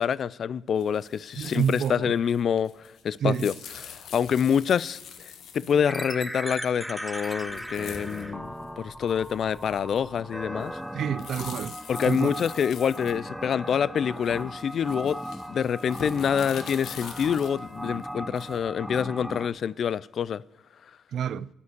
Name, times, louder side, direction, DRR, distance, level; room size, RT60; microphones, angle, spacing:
voice 1, 0.0-3.5 3.8-10.7 11.9-15.2 15.5-20.4, left 7 dB, 55° left, 0.3 m, -26 dB
sound 1, 0.8-1.9 2.2-5.9 7.2-7.3 7.5-8.2 8.6-8.7 9.1-10.2 10.6-13.7 14.2-18.7, left 7 dB, 75° left, 1.3 m, -44 dB
voice 2, 1.4-2.1 3.2-3.5 10.9-11.8 12.1-12.3 21.1-21.5, right 8 dB, 65° right, 0.3 m, -28 dB
sound 2, 5.9-19.5, equal, ahead, 0.7 m, -37 dB
9.6 x 8.6 x 8.0 m
cardioid pair, 90°, 0 cm